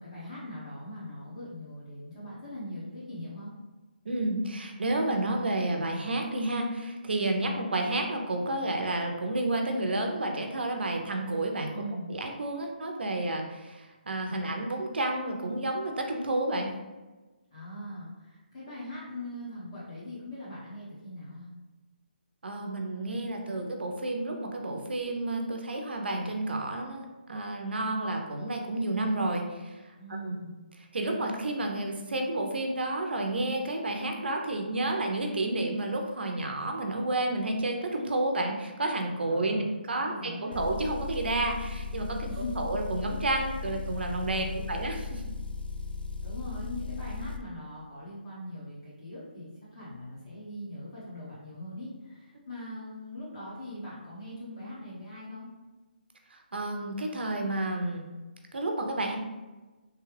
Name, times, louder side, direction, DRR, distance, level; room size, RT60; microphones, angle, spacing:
voice 1, 0.0-3.5 11.7-12.1 17.5-21.5 30.0-30.6 39.2-39.7 39.9-40.6 42.3-42.5 44.3-44.8 46.2-55.5, left 1 dB, 35° left, -10 dB, 1.3 m, -41 dB
voice 2, 4.1-11.7 12.1-16.7 22.4-29.8 30.2-30.3 30.9-42.3 42.6-45.2 56.3-58.0 58.5-59.2, right 2 dB, 80° right, 3 dB, 0.6 m, -30 dB
Motor vehicle (road) / Engine, 40.5-47.4, left 4 dB, 70° left, 0.4 m, -37 dB
3.3 x 2.3 x 3.2 m, 1.2 s
hypercardioid pair, 170°, 6 cm